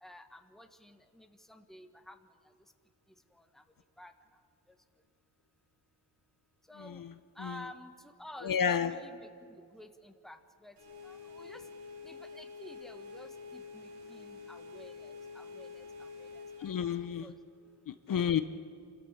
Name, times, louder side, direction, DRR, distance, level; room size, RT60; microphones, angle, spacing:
voice 1, 0.0-2.2 4.0-4.1 6.7-7.0 7.4-8.5 8.8-9.3 9.7-10.4 10.6-10.7 11.0-11.6 12.0-15.9 16.2-16.3 17.2-17.3, left 1 dB, ahead, 6 dB, 1.4 m, -51 dB
voice 2, 6.8-7.1 7.4-7.6 8.4-9.0 16.6-17.3 17.9-18.4, left 8 dB, 50° left, 11 dB, 0.8 m, -31 dB
sound 1, 10.8-16.9, left 4 dB, 80° right, 7.3 m, -47 dB
28.0 x 14.0 x 8.2 m, 2.4 s
cardioid pair, 105°, 43 cm